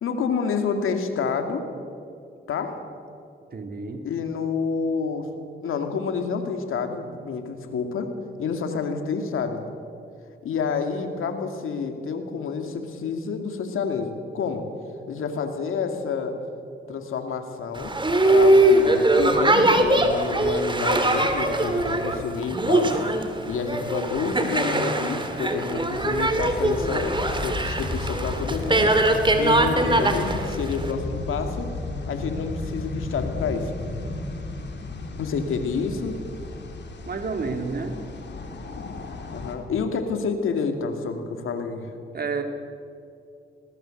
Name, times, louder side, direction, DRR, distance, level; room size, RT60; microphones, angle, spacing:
voice 1, 0.0-1.6 2.5-2.8 4.0-5.3 5.6-8.1 8.4-9.6 10.4-14.6 15.1-16.3 16.9-17.9 18.3-23.0 23.5-31.7 32.1-33.7 35.2-36.2 39.3-41.9, left 5 dB, 80° left, 6 dB, 2.5 m, -28 dB
voice 2, 3.5-4.0 37.0-38.0 42.1-42.4, right 4 dB, 50° right, 5 dB, 2.9 m, -30 dB
Boat Water vehicle, 17.8-30.9, right 1 dB, 20° right, 2.8 m, -21 dB
sound 1, 26.3-39.6, left 2 dB, 55° left, 3.3 m, -34 dB
20.0 x 18.5 x 7.9 m, 2.4 s
cardioid pair, 65°, 21 cm